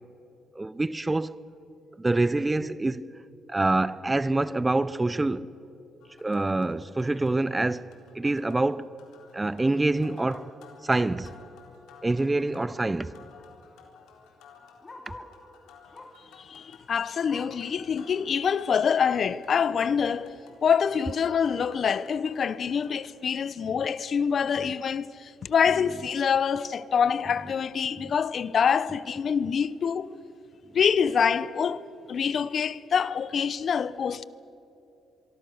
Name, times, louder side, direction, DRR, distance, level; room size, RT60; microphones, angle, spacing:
voice 1, 0.6-1.4 2.0-3.1 3.5-5.5 6.2-8.9 9.3-10.5 10.8-11.3 12.0-13.2 15.1-15.2 23.6-23.8 24.6-24.7 28.0-28.1, right 2 dB, 15° right, 0.6 m, -26 dB
sound 1, 6.0-23.1, left 6 dB, 85° left, 3.8 m, -54 dB
Bark, 11.9-12.0 12.3-12.4 12.6-15.4 15.9-16.3 16.7-17.7 18.2-18.3 18.6-18.7 19.4-19.5, left 2 dB, 30° left, 2.8 m, -49 dB
voice 2, 16.4-20.3 20.6-30.1 30.7-34.2, left 7 dB, 55° left, 0.7 m, -26 dB
25.0 x 24.0 x 6.5 m
cardioid pair, 90°, 0 cm